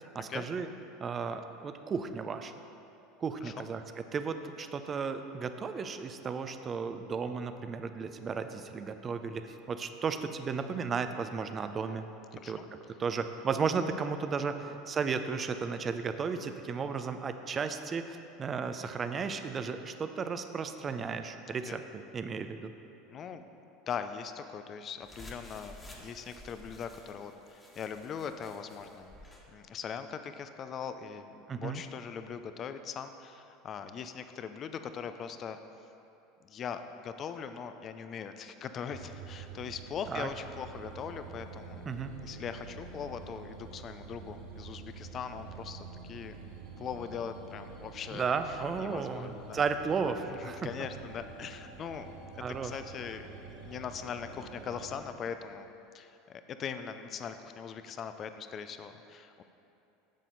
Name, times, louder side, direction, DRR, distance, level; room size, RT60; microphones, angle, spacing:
voice 1, 0.1-0.7 1.0-2.6 3.2-3.8 4.1-12.0 12.5-12.6 13.0-22.7 31.5-31.8 40.1-40.3 41.9-42.1 48.1-50.7 52.4-52.8, right 5 dB, 30° right, 9 dB, 0.6 m, -34 dB
voice 2, 21.5-21.8 23.1-23.4 23.9-29.2 29.5-35.6 36.4-41.8 42.2-46.4 46.8-49.6 50.3-55.7 55.9-59.4, left 7 dB, 40° left, 9 dB, 0.6 m, -41 dB
sound 1, 25.0-29.5, left 1 dB, 15° left, 1.5 m, -52 dB
sound 2, 38.9-55.0, right 4 dB, 75° right, 1.5 m, -47 dB
10.0 x 7.3 x 4.0 m, 2.8 s
hypercardioid pair, 85°, 0 cm